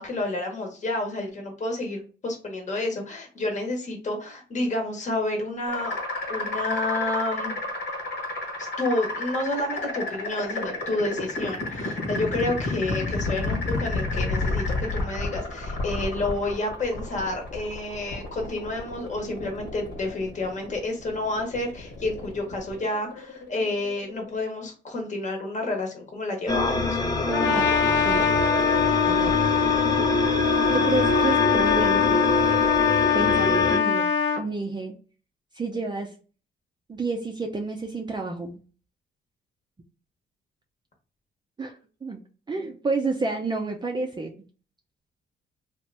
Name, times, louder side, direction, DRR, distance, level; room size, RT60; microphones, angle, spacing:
voice 1, 0.0-6.0 6.3-7.6 8.6-27.0, left 2 dB, 35° left, 2 dB, 1.0 m, -30 dB
sound 1, 5.7-24.4, left 2 dB, 60° left, 1.2 m, -31 dB
sound 2, 26.5-33.8, left 1 dB, 20° left, 0.7 m, -26 dB
Trumpet, 27.3-34.4, left 7 dB, 80° left, 0.5 m, -22 dB
voice 2, 27.3-27.7 28.0-28.3 29.1-29.4 30.7-32.2 33.1-34.1 34.4-35.0 35.5-36.1 36.9-38.6 41.6-42.2 42.5-44.3, right 3 dB, 20° right, 2 dB, 0.5 m, -29 dB
2.9 x 2.5 x 3.3 m, 0.37 s
cardioid pair, 90°, 20 cm